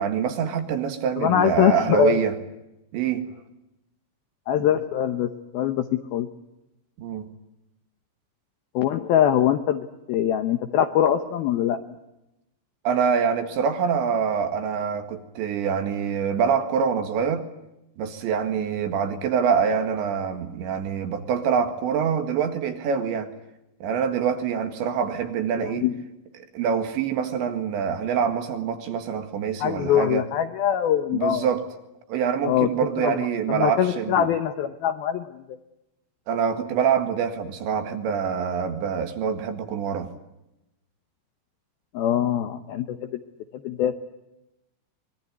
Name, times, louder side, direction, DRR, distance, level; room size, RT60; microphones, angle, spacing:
voice 1, 0.0-2.3 2.9-3.3 7.0-7.3 12.9-17.4 18.0-23.3 23.8-25.9 26.5-30.3 31.1-31.6 32.1-34.3 36.3-40.1, right 7 dB, 70° right, 7 dB, 3.9 m, -25 dB
voice 2, 1.2-2.2 4.5-6.3 8.7-11.8 25.6-25.9 29.6-31.5 32.4-32.7 33.0-33.2 33.5-35.4 41.9-43.1 43.5-44.0, left 10 dB, 80° left, 9 dB, 2.2 m, -23 dB
25.5 x 21.5 x 9.7 m, 0.92 s
omnidirectional pair, 5.8 m